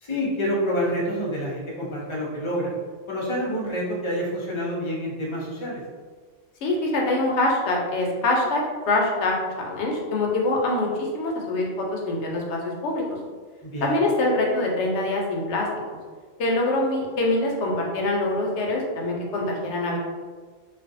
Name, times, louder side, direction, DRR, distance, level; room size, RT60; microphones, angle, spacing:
voice 1, 0.0-2.7 3.1-5.8 13.6-14.0, equal, 40° left, -4 dB, 0.5 m, -27 dB
voice 2, 6.6-13.0 13.8-15.7 16.4-20.0, left 2 dB, 70° left, -1 dB, 0.9 m, -24 dB
2.4 x 2.3 x 2.5 m, 1.5 s
omnidirectional pair, 1.2 m